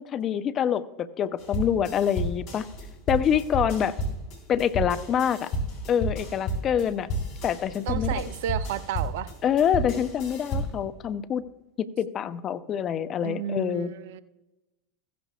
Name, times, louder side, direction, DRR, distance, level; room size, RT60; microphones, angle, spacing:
voice 1, 0.0-2.6 3.1-3.9 4.5-5.5 5.9-7.1 7.4-8.2 9.4-11.4 11.8-13.9, left 8 dB, 35° left, 13 dB, 0.6 m, -26 dB
sound 1, 1.4-10.9, right 1 dB, 55° left, 4.0 m, -32 dB
voice 2, 7.9-9.3 13.2-14.2, right 11 dB, 65° right, 15 dB, 0.5 m, -32 dB
15.5 x 10.5 x 2.3 m, 1.0 s
hypercardioid pair, 85°, 0 cm